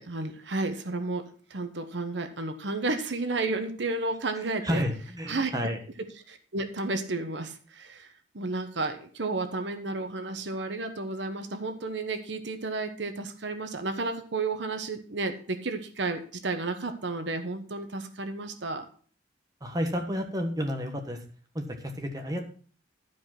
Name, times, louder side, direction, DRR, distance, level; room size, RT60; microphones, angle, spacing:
voice 1, 0.0-4.8 5.3-5.5 6.3-18.8, right 3 dB, 70° right, 7 dB, 1.1 m, -32 dB
voice 2, 4.4-5.8 19.6-21.2 21.5-22.4, equal, 20° right, 3 dB, 1.3 m, -31 dB
12.5 x 5.1 x 5.9 m, 0.43 s
head